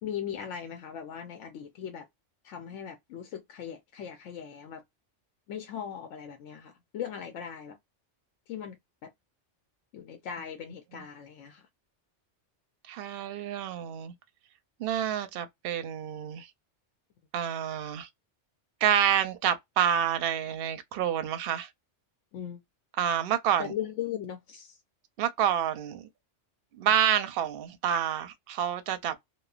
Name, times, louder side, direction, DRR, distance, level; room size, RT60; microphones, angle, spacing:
voice 1, 0.0-2.1 2.4-4.8 5.5-7.8 8.5-9.1 9.9-11.7 22.3-22.6 23.6-24.8, left 9 dB, 85° left, 0.9 m, -39 dB
voice 2, 12.9-14.1 14.8-16.5 17.3-18.1 18.8-21.7 23.0-23.7 25.2-26.0 26.7-29.1, right 9 dB, 60° right, 0.7 m, -28 dB
3.0 x 2.1 x 2.4 m
omnidirectional pair, 1.3 m